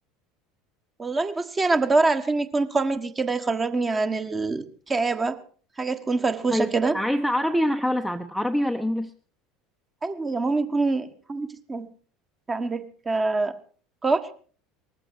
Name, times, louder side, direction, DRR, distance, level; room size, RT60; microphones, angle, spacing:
voice 1, 1.0-5.4 5.8-7.0 10.0-11.9 12.5-13.5 14.0-14.2, right 3 dB, 20° right, 9 dB, 1.5 m, -25 dB
voice 2, 6.5-9.1, equal, ahead, 8 dB, 0.9 m, -25 dB
19.5 x 15.0 x 4.7 m, 0.43 s
figure-of-eight pair, 70°, 0 cm